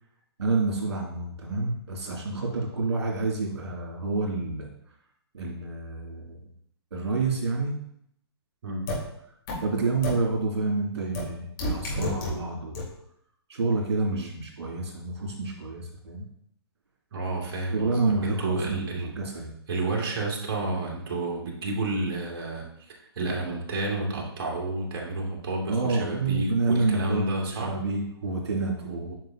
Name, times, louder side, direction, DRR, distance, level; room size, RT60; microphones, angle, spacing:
voice 1, 0.4-4.7 5.3-6.5 6.9-7.8 9.6-12.8 13.5-16.2 17.7-19.5 25.7-27.3 27.6-29.1, right 3 dB, 75° right, -2 dB, 2.7 m, -28 dB
voice 2, 8.6-9.0 14.1-14.3 17.1-19.1 19.7-27.7 28.9-29.1, right 2 dB, 55° right, -2 dB, 2.4 m, -30 dB
sound 1, 8.9-9.0 9.5-9.6 10.0-10.1 11.1-11.2 11.6-12.3 12.7-12.8, left 2 dB, 55° left, 3.0 m, -29 dB
9.2 x 5.2 x 2.9 m, 0.73 s
hypercardioid pair, 130°, 14 cm